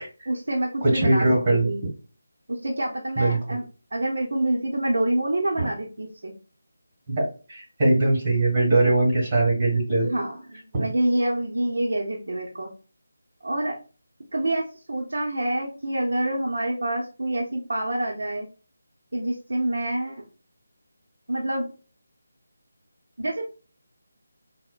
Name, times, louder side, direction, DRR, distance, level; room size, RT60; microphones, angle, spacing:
voice 1, 0.3-1.8 2.5-3.6 3.9-6.3 10.1-12.7 13.4-13.8 14.3-18.5 19.1-20.2 21.3-21.7 23.2-23.5, right 1 dB, 60° right, -2 dB, 0.7 m, -27 dB
voice 2, 0.8-1.7 3.2-3.4 5.6-5.7 7.1-10.1 10.7-10.9, right 2 dB, 25° right, -3 dB, 1.6 m, -21 dB
4.2 x 2.1 x 2.2 m, 0.35 s
figure-of-eight pair, 155°, 0 cm